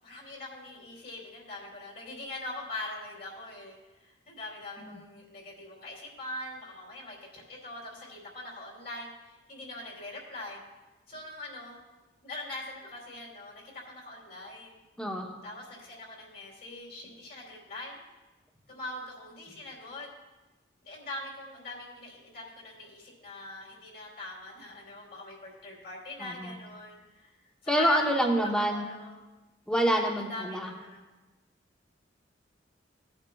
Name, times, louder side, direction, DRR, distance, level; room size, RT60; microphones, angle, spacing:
voice 1, 0.0-10.6 11.1-11.8 12.2-14.8 15.4-18.0 18.7-20.1 20.8-27.3 27.6-28.2 28.7-29.2 29.8-31.0, left 2 dB, 55° left, -3 dB, 2.8 m, -42 dB
voice 2, 26.2-26.6 27.7-28.8 29.7-30.7, equal, 5° left, 1 dB, 0.9 m, -27 dB
16.5 x 8.6 x 2.3 m, 1.1 s
head